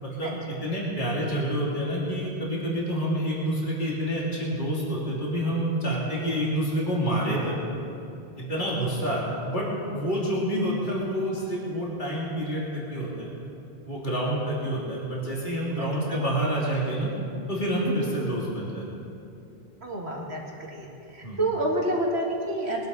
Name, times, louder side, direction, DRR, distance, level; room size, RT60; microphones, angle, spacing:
voice 1, 0.0-7.6 8.4-13.3 13.9-17.1 17.5-18.8 21.2-21.4, equal, 50° left, -6 dB, 3.1 m, -28 dB
voice 2, 15.8-16.3 17.8-18.1 19.8-20.4 20.7-22.9, right 1 dB, 85° right, -2 dB, 2.4 m, -29 dB
22.0 x 11.5 x 4.1 m, 2.7 s
omnidirectional pair, 1.1 m